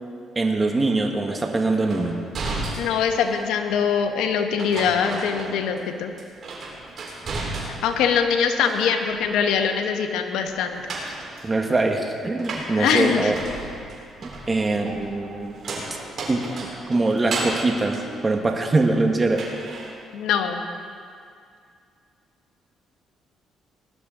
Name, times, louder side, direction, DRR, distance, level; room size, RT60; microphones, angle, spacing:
voice 1, 0.3-2.2 11.4-13.4 14.2-15.8 16.3-16.4 16.9-19.8, right 2 dB, 25° right, 3 dB, 1.4 m, -23 dB
sound 1, 1.9-3.5 4.6-5.9 6.2-8.0 8.4-9.2 10.6-18.9 19.3-19.9, right 2 dB, 55° right, 4.0 m, -34 dB
voice 2, 2.8-6.1 7.8-10.8 12.7-13.3 20.1-20.6, left 7 dB, 85° left, 5 dB, 1.1 m, -23 dB
19.5 x 11.5 x 3.8 m, 2.3 s
supercardioid pair, 75°, 0 cm